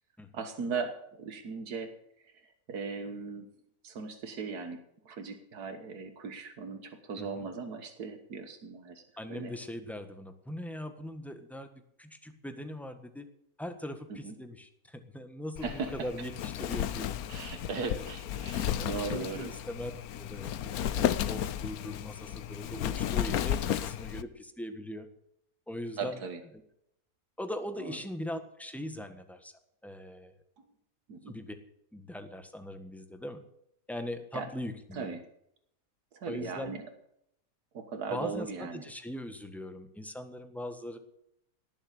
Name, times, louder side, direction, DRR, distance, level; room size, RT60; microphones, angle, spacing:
voice 1, 0.3-1.9 2.7-3.5 3.8-4.8 5.1-9.0 9.3-9.5 14.1-14.3 15.6-15.9 17.3-19.5 20.8-21.1 26.0-26.4 27.8-28.0 31.1-31.4 34.3-34.5 34.9-35.2 36.1-36.9 37.7-38.8, right 5 dB, 90° right, 6 dB, 1.9 m, -38 dB
voice 2, 9.2-11.7 12.0-13.3 13.6-17.1 18.7-19.9 20.2-25.1 25.7-26.2 27.4-29.5 29.8-30.4 31.3-31.5 31.9-33.4 33.9-35.2 36.3-36.7 38.1-41.0, left 1 dB, ahead, 8 dB, 1.3 m, -40 dB
Wind, 15.6-24.2, left 10 dB, 75° left, 1.2 m, -33 dB
18.0 x 7.3 x 8.2 m, 0.77 s
omnidirectional pair, 1.6 m